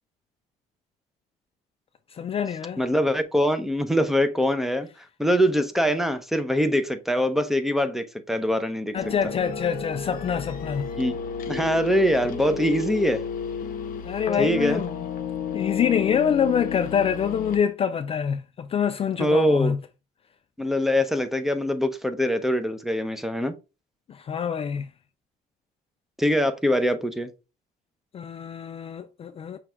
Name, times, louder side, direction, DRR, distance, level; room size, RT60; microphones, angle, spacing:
voice 1, 2.1-2.8 8.9-10.9 14.0-15.0 15.5-19.8 24.1-24.9 28.1-29.6, left 7 dB, 35° left, 0.4 m, -26 dB
voice 2, 2.8-4.9 5.2-9.0 11.0-11.1 11.5-13.2 14.4-14.8 19.2-19.7 20.6-23.5 26.2-27.3, equal, ahead, 0.6 m, -23 dB
sound 1, 8.9-17.6, left 6 dB, 55° left, 0.8 m, -32 dB
5.9 x 2.4 x 3.3 m
cardioid pair, 110°, 17 cm